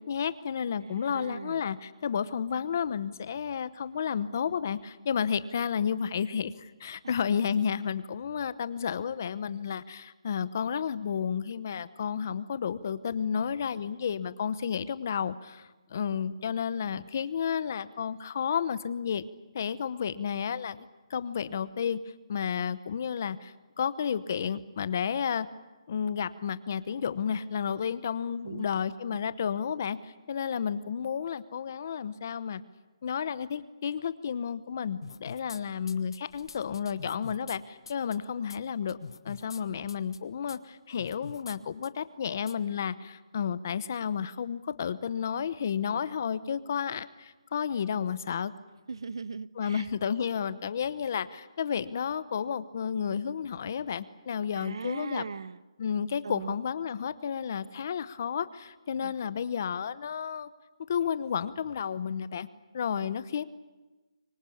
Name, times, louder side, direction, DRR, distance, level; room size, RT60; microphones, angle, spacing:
voice 1, 0.0-19.2 19.5-22.0 22.3-25.5 25.9-32.6 33.0-39.0 39.2-48.5 49.6-55.2 55.8-60.5 60.9-62.5 62.7-63.4, left 7 dB, 30° left, 16 dB, 0.9 m, -32 dB
voice 2, 0.8-1.6 28.4-28.6 29.1-29.2 48.9-49.9 54.5-55.6 56.2-56.5 59.0-59.1 62.9-63.0, right 5 dB, 55° right, 18 dB, 0.8 m, -39 dB
sound 1, 35.0-35.6 35.9-37.6 37.9-38.2 38.5-38.6 38.9-39.6 39.9-40.2 40.5-40.6 41.0-41.6 41.8-41.9 42.5-42.6, left 5 dB, 55° left, 1.3 m, -44 dB
24.5 x 24.0 x 8.6 m, 1.2 s
hypercardioid pair, 175°, 3 cm